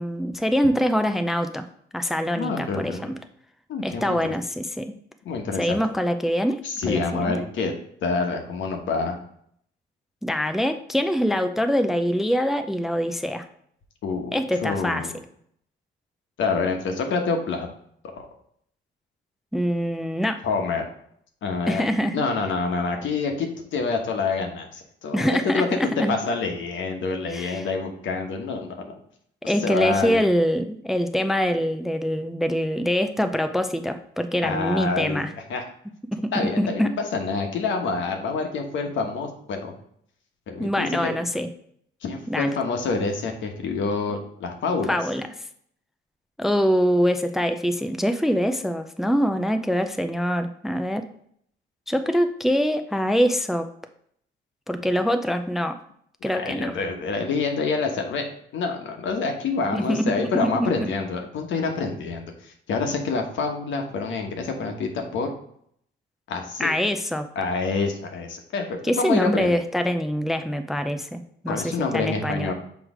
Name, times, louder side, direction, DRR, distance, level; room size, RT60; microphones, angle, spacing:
voice 1, 0.0-1.7 1.9-3.2 3.8-4.9 5.6-7.4 10.2-13.5 14.3-15.1 19.5-20.4 21.7-22.2 25.1-26.2 27.3-27.7 29.5-35.3 36.1-36.9 40.6-41.5 42.3-42.5 44.9-45.3 46.4-51.1 51.9-53.7 54.7-55.8 56.2-56.7 59.7-60.9 66.6-67.3 68.8-72.5, equal, ahead, 8 dB, 0.4 m, -24 dB
voice 2, 2.3-3.1 3.7-4.3 5.2-5.8 6.6-7.7 8.0-9.2 14.0-14.3 14.6-15.1 16.4-17.7 18.1-18.2 20.4-20.8 21.4-21.8 22.1-25.7 26.1-28.9 29.4-30.2 34.4-35.2 35.5-35.6 36.3-39.7 40.5-41.1 42.0-44.9 56.3-58.2 58.5-65.3 66.3-66.7 67.4-69.6 71.5-72.5, left 4 dB, 75° left, 4 dB, 1.1 m, -27 dB
6.2 x 3.1 x 5.0 m, 0.67 s
cardioid pair, 90°, 20 cm